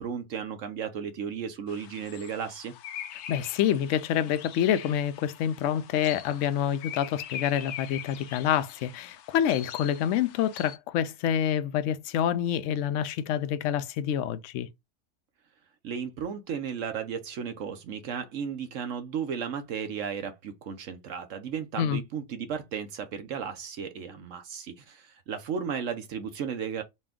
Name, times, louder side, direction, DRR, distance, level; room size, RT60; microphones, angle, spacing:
voice 1, 0.0-2.7 15.8-26.8, right 7 dB, 65° right, 1.0 m, -34 dB
sound 1, 1.7-10.8, left 10 dB, 90° left, 1.1 m, -43 dB
voice 2, 3.3-14.7 21.8-22.0, left 10 dB, 70° left, 0.8 m, -27 dB
4.2 x 2.3 x 3.5 m
omnidirectional pair, 1.6 m